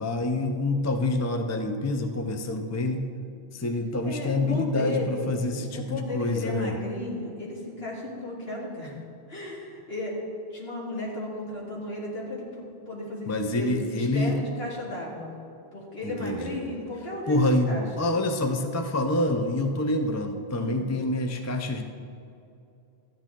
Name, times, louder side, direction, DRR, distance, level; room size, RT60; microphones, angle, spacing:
voice 1, 0.0-3.1 3.5-6.8 13.3-14.4 16.0-16.7 17.3-21.8, left 2 dB, 20° left, 5 dB, 0.4 m, -27 dB
voice 2, 4.0-5.3 5.7-8.9 9.3-10.1 10.5-15.3 15.7-17.8 20.5-20.8, left 2 dB, 65° left, -5 dB, 2.6 m, -34 dB
13.5 x 9.8 x 3.7 m, 2.6 s
omnidirectional pair, 1.1 m